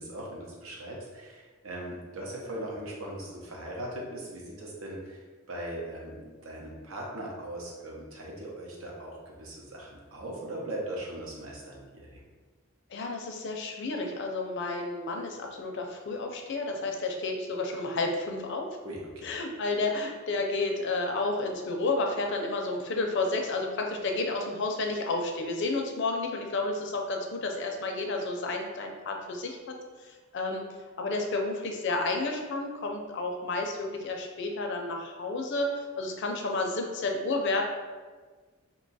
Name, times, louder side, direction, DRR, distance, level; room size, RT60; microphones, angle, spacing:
voice 1, 0.0-5.2 5.5-12.2 18.8-19.3, right 1 dB, 85° right, -2 dB, 0.8 m, -39 dB
voice 2, 12.9-18.7 19.2-30.7 31.0-37.6, left 2 dB, 60° left, 2 dB, 0.5 m, -31 dB
2.8 x 2.3 x 4.0 m, 1.4 s
head